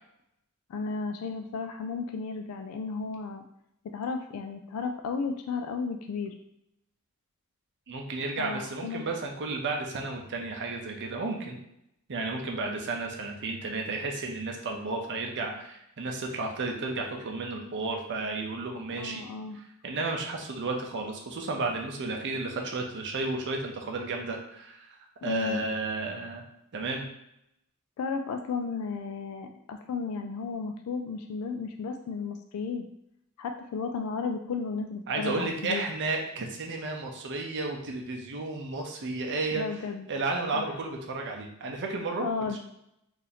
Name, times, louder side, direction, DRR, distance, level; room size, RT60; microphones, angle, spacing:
voice 1, 0.7-3.4 3.8-6.3 8.4-9.0 19.0-19.6 25.2-25.6 28.0-32.9 33.4-35.8 39.5-40.1 40.5-40.7 42.2-42.6, left 4 dB, 70° left, 5 dB, 0.3 m, -34 dB
voice 2, 7.9-11.6 12.1-19.3 19.8-25.0 25.2-26.4 26.7-27.1 35.1-39.6 40.1-42.3 42.5-42.6, right 3 dB, 55° right, 2 dB, 0.6 m, -32 dB
2.8 x 2.5 x 4.0 m, 0.79 s
head